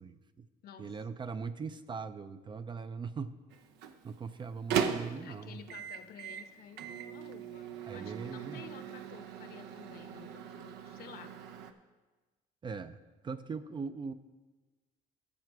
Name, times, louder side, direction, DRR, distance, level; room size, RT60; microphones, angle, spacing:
voice 1, 0.0-0.5 0.8-3.3 4.0-5.6 7.8-8.6 12.6-13.0 13.2-14.1, right 5 dB, 30° right, 11 dB, 0.4 m, -40 dB
voice 2, 0.6-1.0 5.2-11.3, left 7 dB, 65° left, 8 dB, 1.0 m, -52 dB
Microwave oven, 3.5-11.7, right 7 dB, 85° right, 0.7 m, -39 dB
12.5 x 7.5 x 4.7 m, 1.3 s
cardioid pair, 110°, 17 cm